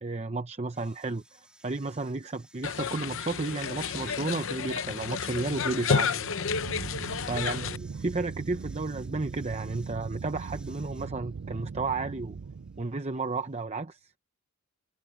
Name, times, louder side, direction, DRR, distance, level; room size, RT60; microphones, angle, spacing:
voice 1, 0.0-6.5 7.3-12.4 12.8-14.1, right 3 dB, 30° right, 0.7 m, -33 dB
sound 1, 0.7-13.6, right 1 dB, 5° right, 2.8 m, -60 dB
sound 2, 2.6-7.8, left 6 dB, 60° left, 0.7 m, -31 dB
sound 3, 6.5-12.8, right 5 dB, 60° right, 0.5 m, -39 dB
head